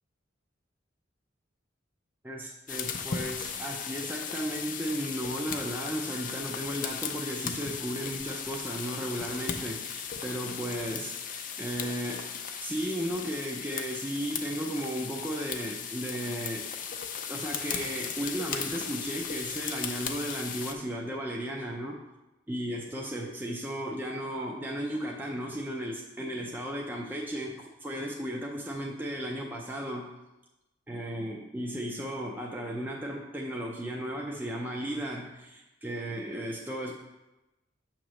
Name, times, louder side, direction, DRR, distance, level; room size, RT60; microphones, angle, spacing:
voice 1, 2.2-16.7 17.3-22.0 22.5-30.1 30.9-36.9, right 1 dB, 10° right, -2 dB, 0.5 m, -35 dB
sound 1, 2.7-20.7, left 7 dB, 45° left, 0.5 m, -37 dB
7.7 x 3.0 x 6.2 m, 1.0 s
head